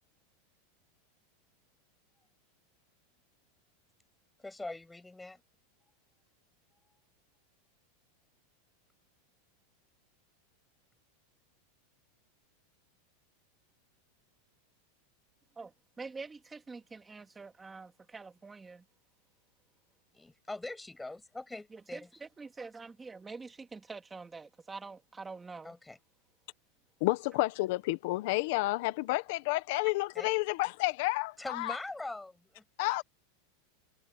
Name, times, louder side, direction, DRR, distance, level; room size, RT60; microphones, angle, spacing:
voice 1, 4.4-5.4 20.1-22.1 25.6-26.0 30.1-30.4 31.4-33.0, left 2 dB, 5° left, 7.5 m, -43 dB
voice 2, 15.6-18.8 21.7-25.7, right 4 dB, 10° right, 2.7 m, -46 dB
voice 3, 27.0-31.8 32.8-33.0, left 20 dB, 55° left, 1.5 m, -30 dB
supercardioid pair, 150°, 0 cm